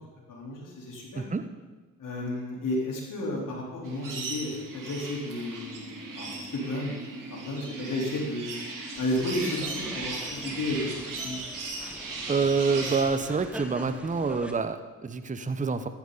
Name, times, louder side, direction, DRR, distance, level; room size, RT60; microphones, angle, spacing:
voice 1, 0.3-1.2 2.0-6.9 7.3-8.5 9.0-11.4, left 1 dB, 65° left, -2 dB, 3.8 m, -32 dB
voice 2, 1.2-1.5 12.3-15.9, right 4 dB, 20° right, 10 dB, 0.8 m, -27 dB
sound 1, 3.8-13.0, right 3 dB, 65° right, 3.1 m, -37 dB
sound 2, 8.9-14.5, equal, 5° right, 1.4 m, -43 dB
14.5 x 10.5 x 4.0 m, 1.3 s
supercardioid pair, 60°, 34 cm